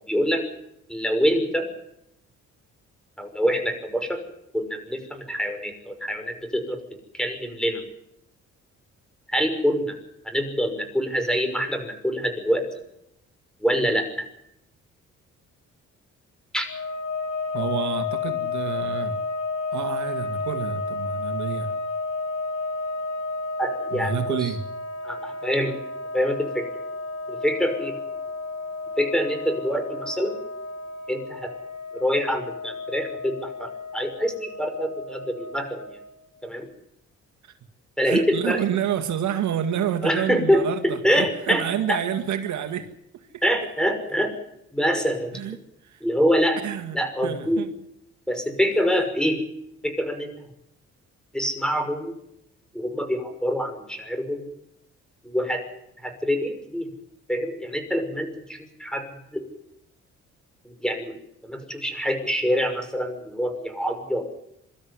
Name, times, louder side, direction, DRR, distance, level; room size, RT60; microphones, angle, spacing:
voice 1, 0.1-0.4 0.9-1.6 3.2-4.2 4.5-6.8 7.1-7.8 9.3-9.9 10.2-12.6 13.6-14.3 16.5-16.7 23.6-24.5 25.0-25.7 26.1-26.6 27.3-28.0 29.0-30.4 31.1-31.5 31.9-36.0 36.4-36.7 38.0-38.6 40.0-41.6 41.9-42.0 43.4-44.3 44.7-45.4 46.0-46.6 46.9-47.6 48.3-49.4 49.8-50.5 51.3-52.2 52.7-54.5 55.2-55.6 56.0-56.9 57.3-59.4 60.8-61.1 61.4-64.4, equal, ahead, 7 dB, 5.9 m, -25 dB
sound 1, 16.7-36.3, left 3 dB, 70° left, 5.7 m, -32 dB
voice 2, 17.5-19.2 19.7-21.7 23.9-24.6 37.4-37.5 38.0-43.3 45.3-45.6 45.8-46.0 46.6-47.7, right 9 dB, 70° right, 7 dB, 2.0 m, -29 dB
24.5 x 13.0 x 9.7 m, 0.77 s
cardioid pair, 90°, 30 cm